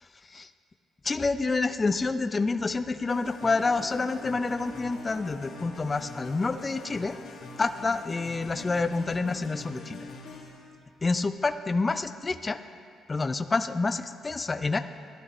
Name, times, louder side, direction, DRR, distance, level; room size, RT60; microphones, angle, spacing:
voice 1, 1.0-7.1 7.6-10.0 11.0-12.6 13.1-14.8, left 3 dB, 25° left, 9 dB, 0.5 m, -28 dB
sound 1, 3.1-10.7, left 3 dB, 70° left, 2.1 m, -43 dB
18.0 x 12.0 x 3.0 m, 2.5 s
cardioid pair, 90°, 0 cm